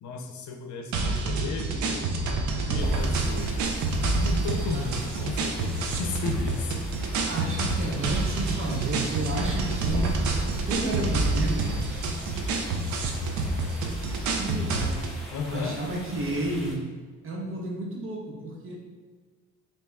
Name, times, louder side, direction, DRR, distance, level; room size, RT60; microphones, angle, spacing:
voice 1, 0.0-2.4 2.7-3.5 4.0-6.8 15.3-15.8, left 4 dB, 70° left, 5 dB, 0.6 m, -35 dB
sound 1, 0.9-15.2, right 2 dB, 75° right, 0.6 m, -28 dB
sound 2, 2.8-16.7, equal, ahead, 1.0 m, -43 dB
voice 2, 7.3-10.2 10.7-11.7 14.4-15.1 15.4-16.9 17.2-18.8, right 1 dB, 45° right, -1 dB, 0.9 m, -31 dB
3.4 x 2.9 x 3.3 m, 1.4 s
cardioid pair, 90°, 30 cm